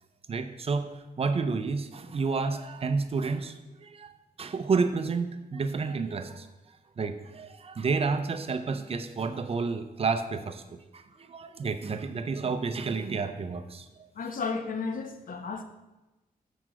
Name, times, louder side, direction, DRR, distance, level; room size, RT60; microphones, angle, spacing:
voice 1, 0.3-6.5 7.0-14.1, right 4 dB, 40° right, 9 dB, 0.5 m, -30 dB
voice 2, 14.2-15.6, left 4 dB, 65° left, 7 dB, 0.8 m, -33 dB
8.0 x 4.6 x 6.1 m, 1.0 s
wide cardioid pair, 175°, 15 cm